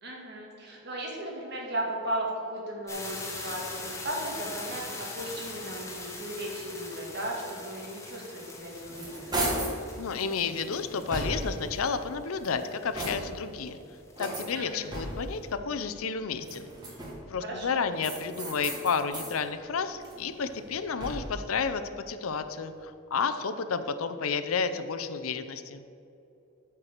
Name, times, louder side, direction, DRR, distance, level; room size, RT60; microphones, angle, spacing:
voice 1, 0.0-9.4 14.5-14.9 17.4-17.8, right 1 dB, 50° right, -2 dB, 1.9 m, -36 dB
sound 1, 2.9-13.1 13.7-13.8 13.9-14.4, left 3 dB, 15° left, 1.0 m, -42 dB
sound 2, 8.5-9.8 10.4-11.7 12.3-13.5 14.2-15.4 16.3-17.4 18.0-19.4 19.8-21.5, right 1 dB, 20° right, 1.5 m, -36 dB
voice 2, 10.0-13.8 14.2-16.7 17.3-21.8 22.1-25.8, left 5 dB, 90° left, 10 dB, 0.5 m, -31 dB
8.9 x 4.7 x 6.4 m, 2.7 s
head